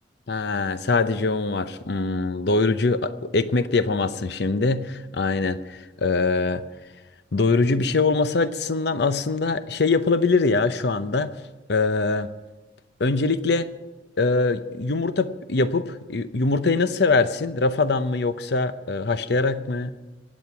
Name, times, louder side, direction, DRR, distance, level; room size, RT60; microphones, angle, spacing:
voice 1, 0.3-6.6 7.3-11.3 11.7-12.3 13.0-13.7 14.2-19.9, left 3 dB, 70° left, 12 dB, 0.7 m, -23 dB
23.5 x 9.3 x 5.9 m, 1.2 s
head